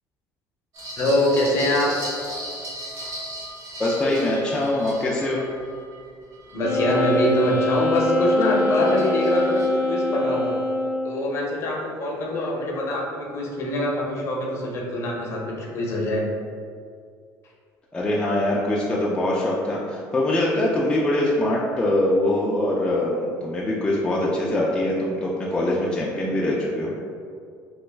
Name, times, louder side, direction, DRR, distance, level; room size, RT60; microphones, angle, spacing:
sound 1, 0.7-7.4 7.9-9.7, right 1 dB, 60° right, 1.2 m, -37 dB
voice 1, 1.0-1.9 6.5-10.6 11.0-16.2, left 1 dB, 45° left, -2 dB, 0.7 m, -24 dB
voice 2, 3.8-5.5 17.9-26.9, left 1 dB, 15° left, -5 dB, 0.3 m, -23 dB
Wind instrument woodwind instrument, 6.6-11.3, left 1 dB, 85° left, 0.6 m, -24 dB
3.0 x 2.3 x 3.3 m, 2.2 s
cardioid pair, 135°, 7 cm